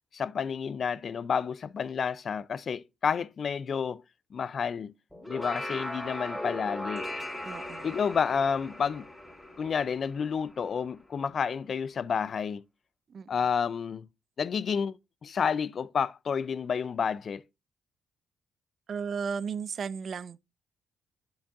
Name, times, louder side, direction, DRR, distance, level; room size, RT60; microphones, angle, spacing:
voice 1, 0.1-4.0 4.3-4.9 5.3-7.1 7.8-9.1 9.6-12.6 13.3-14.1 14.4-15.0 15.2-17.4, left 6 dB, 50° left, 0.3 m, -30 dB
sound 1, 5.1-10.6, left 1 dB, 5° left, 2.8 m, -38 dB
voice 2, 7.4-7.8 13.1-13.3 18.9-20.4, right 6 dB, 50° right, 0.4 m, -34 dB
7.5 x 7.1 x 2.4 m
cardioid pair, 90°, 0 cm